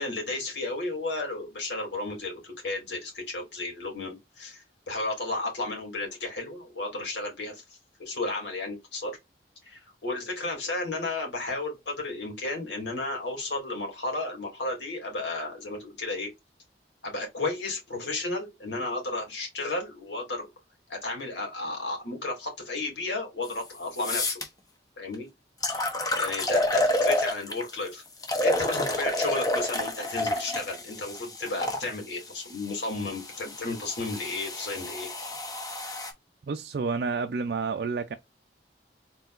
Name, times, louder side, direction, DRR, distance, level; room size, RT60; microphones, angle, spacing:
voice 1, 0.0-7.6 8.0-9.2 9.6-16.3 17.0-20.5 20.9-24.4 25.0-25.3 25.7-28.0 28.4-35.1, left 2 dB, 90° left, 2.5 m, -33 dB
sound 1, 23.5-23.6 24.0-24.4 25.1-25.2 25.6-27.7 28.2-31.8 32.7-36.1, left 1 dB, 20° left, 0.9 m, -29 dB
voice 2, 36.5-38.1, right 4 dB, 60° right, 0.4 m, -29 dB
4.3 x 3.9 x 2.4 m
head